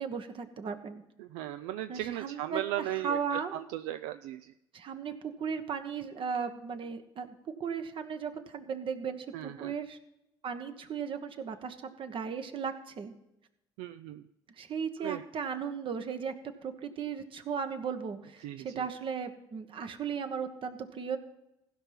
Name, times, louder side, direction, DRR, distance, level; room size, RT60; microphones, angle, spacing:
voice 1, 0.0-1.0 1.9-3.5 4.7-7.3 7.6-10.0 10.4-13.1 14.6-16.3 16.6-21.2, right 6 dB, 50° right, 8 dB, 1.3 m, -36 dB
voice 2, 1.2-4.5 9.3-9.7 13.8-14.3 15.0-15.2 18.4-18.9, right 14 dB, 75° right, 10 dB, 0.4 m, -37 dB
15.5 x 5.7 x 5.8 m, 0.88 s
hypercardioid pair, 60°, 11 cm